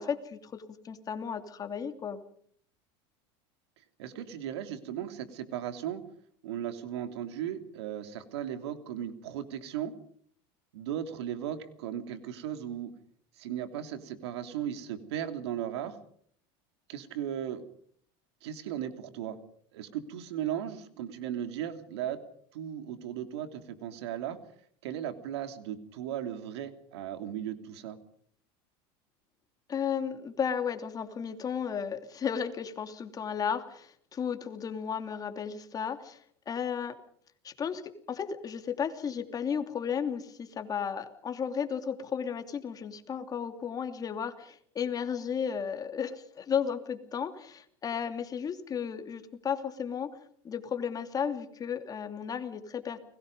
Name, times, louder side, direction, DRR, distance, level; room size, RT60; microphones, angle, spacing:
voice 1, 0.0-2.2 29.7-36.2 36.5-37.0 37.4-37.8 38.1-50.1 50.4-53.0, left 7 dB, 25° left, 7 dB, 2.8 m, -34 dB
voice 2, 4.0-6.0 6.4-9.9 10.7-12.9 13.4-16.0 16.9-17.7 18.4-19.4 19.7-22.2 22.5-24.4 24.8-28.0, right 10 dB, 90° right, 9 dB, 2.9 m, -36 dB
30.0 x 21.0 x 5.4 m, 0.62 s
supercardioid pair, 130°, 14 cm